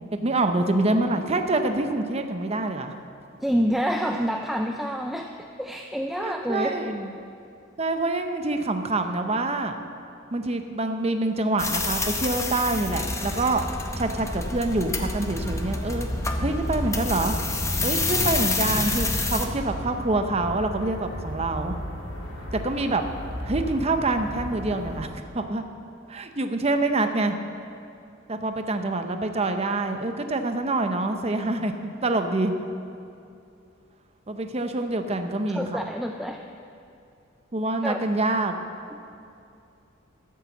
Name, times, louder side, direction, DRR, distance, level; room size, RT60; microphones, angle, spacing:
voice 1, 0.1-2.9 6.2-7.1 7.8-9.8 10.3-13.6 14.0-16.1 16.4-17.4 17.8-21.8 22.5-23.0 23.4-25.6 26.1-27.4 28.3-32.5 34.3-35.8 37.5-38.5, right 2 dB, 30° right, 7 dB, 0.8 m, -26 dB
voice 2, 3.4-5.3 5.6-6.8 35.5-36.4 37.8-38.0, equal, ahead, 3 dB, 0.4 m, -27 dB
sound 1, 11.6-19.5, left 2 dB, 15° left, 0.8 m, -28 dB
sound 2, 15.3-25.0, equal, 70° left, 2.3 m, -35 dB
13.0 x 7.4 x 7.1 m, 2.6 s
head